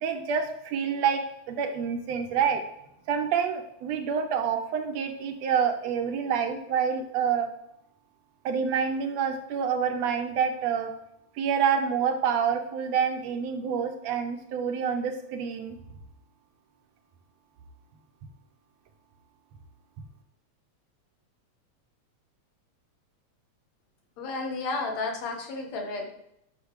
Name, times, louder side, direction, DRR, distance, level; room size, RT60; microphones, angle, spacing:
voice 1, 0.0-2.6 3.1-7.5 8.5-10.9 11.4-15.8, right 7 dB, 70° right, 6 dB, 1.9 m, -27 dB
voice 2, 24.2-26.1, left 3 dB, 65° left, 2 dB, 2.6 m, -32 dB
10.0 x 6.2 x 3.2 m, 0.80 s
omnidirectional pair, 3.4 m